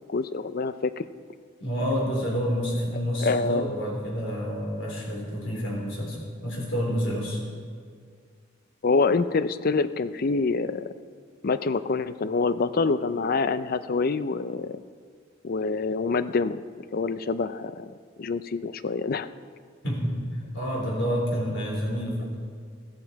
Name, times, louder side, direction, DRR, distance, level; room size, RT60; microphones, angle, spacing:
voice 1, 0.1-1.0 3.2-3.6 8.8-10.9 11.4-14.8 15.4-16.6 16.9-17.9 18.2-19.3, left 4 dB, 45° left, 14 dB, 0.5 m, -26 dB
voice 2, 1.6-7.4 19.8-20.1 20.5-22.3, equal, 65° left, -2 dB, 4.1 m, -28 dB
15.0 x 13.5 x 4.6 m, 2.1 s
head